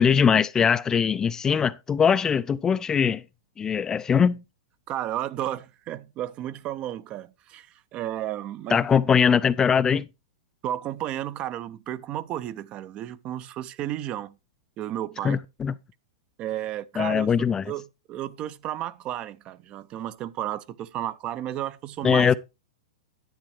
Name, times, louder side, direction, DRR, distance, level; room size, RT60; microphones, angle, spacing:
voice 1, 0.0-3.2 3.6-4.4 8.7-10.1 15.2-15.7 17.0-17.7 22.0-22.3, left 7 dB, 20° left, 0.4 m, -21 dB
voice 2, 4.9-8.8 10.6-14.3 14.8-15.4 16.4-22.3, right 12 dB, 35° right, 0.6 m, -33 dB
10.0 x 8.7 x 3.2 m
hypercardioid pair, 115°, 3 cm